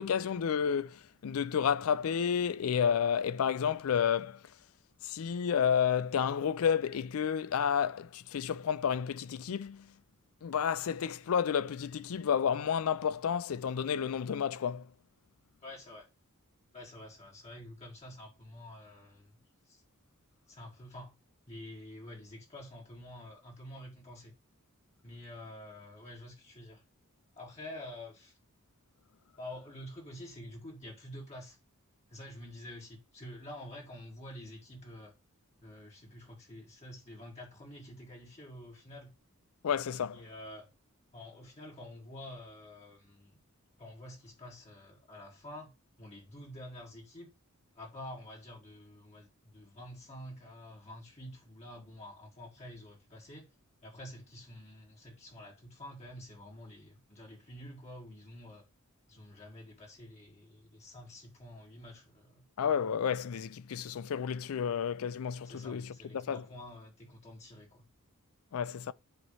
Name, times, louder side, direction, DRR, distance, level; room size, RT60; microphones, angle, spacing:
voice 1, 0.0-4.4 5.0-9.9 10.4-14.9 39.6-40.2 62.6-66.4 68.5-68.9, left 7 dB, 70° left, 0.4 m, -31 dB
voice 2, 15.6-16.1 16.7-19.4 19.7-19.8 20.5-21.1 21.5-24.3 25.0-26.8 27.3-28.4 29.4-31.6 32.1-35.1 35.6-39.1 40.1-40.7 41.1-43.4 43.8-45.7 46.0-47.3 47.7-53.5 53.8-58.7 59.1-62.4 65.5-67.9, left 1 dB, 30° left, 1.7 m, -48 dB
8.0 x 3.1 x 5.5 m
head